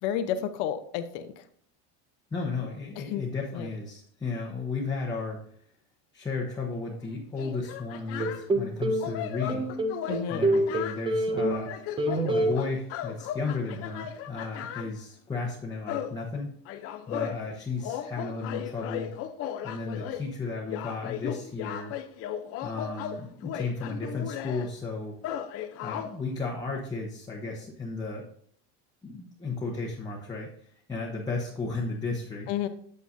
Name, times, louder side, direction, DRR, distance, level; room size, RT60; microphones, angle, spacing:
voice 1, 0.0-1.4 3.0-3.2 3.5-3.7 10.1-10.5 32.5-32.7, left 9 dB, 70° left, 9 dB, 0.9 m, -31 dB
voice 2, 2.3-5.4 6.1-9.7 10.3-11.7 12.3-16.5 17.1-19.1 19.6-21.9 22.6-25.2 25.8-28.2 29.0-32.5, left 3 dB, 10° left, -3 dB, 1.0 m, -34 dB
sound 1, 6.9-7.0 7.4-8.5 9.0-11.0 11.5-14.9 15.9-16.2 16.7-17.4 17.8-20.3 20.6-24.7 25.2-26.2, left 10 dB, 40° left, 0.7 m, -36 dB
sound 2, 8.2-9.1 9.5-11.7 12.0-12.5, right 1 dB, 15° right, 0.5 m, -26 dB
8.5 x 7.9 x 2.6 m, 0.62 s
cardioid pair, 150°, 34 cm